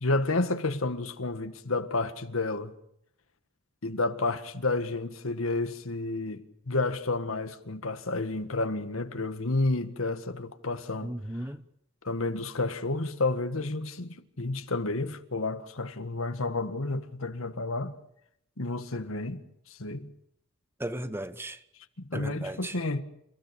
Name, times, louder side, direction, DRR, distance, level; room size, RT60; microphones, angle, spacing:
voice 1, 0.0-2.7 3.8-11.1 12.0-18.0 18.6-20.1 22.0-23.0, left 2 dB, 85° left, 1.7 m, -30 dB
voice 2, 11.0-11.6 20.8-21.6 22.1-22.8, right 1 dB, 10° right, 1.1 m, -36 dB
29.5 x 16.5 x 7.0 m
head